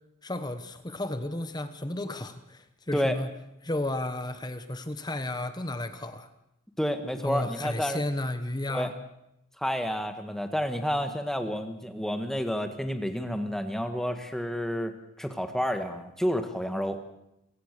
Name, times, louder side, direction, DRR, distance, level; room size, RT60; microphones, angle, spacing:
voice 1, 0.2-3.3 3.6-6.3 7.2-8.9, left 1 dB, 20° left, 10 dB, 1.1 m, -33 dB
voice 2, 6.8-8.0 8.7-8.9 9.6-17.0, equal, ahead, 7 dB, 1.6 m, -30 dB
27.5 x 16.0 x 6.7 m, 0.83 s
head